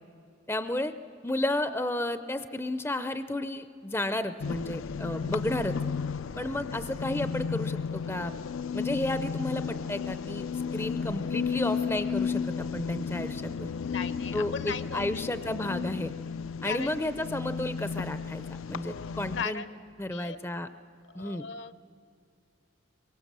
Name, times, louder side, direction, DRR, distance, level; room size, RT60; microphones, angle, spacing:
voice 1, 0.5-0.9 1.2-5.8 6.4-8.3 8.7-13.7 14.3-16.1 16.6-19.6 20.0-20.7 21.1-21.5, left 1 dB, 10° left, 11 dB, 0.5 m, -32 dB
sound 1, 4.4-19.4, left 6 dB, 80° left, 0.5 m, -33 dB
voice 2, 13.8-15.2 16.6-17.0 18.8-19.8 20.1-20.4 21.1-21.8, left 5 dB, 60° left, 13 dB, 0.8 m, -38 dB
24.5 x 23.0 x 7.4 m, 2.5 s
head